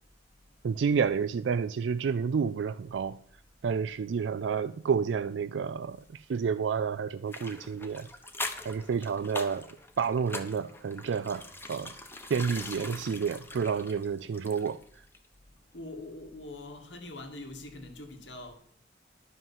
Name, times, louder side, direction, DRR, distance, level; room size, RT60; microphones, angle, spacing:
voice 1, 0.6-3.2 3.6-8.1 8.6-9.7 10.0-11.9 12.3-14.8, right 6 dB, 80° right, 0.4 m, -30 dB
sound 1, 7.3-14.9 15.1-15.3, left 2 dB, 15° left, 0.9 m, -42 dB
voice 2, 12.6-13.1 15.7-18.5, left 2 dB, 90° left, 2.1 m, -43 dB
11.0 x 5.6 x 7.2 m
head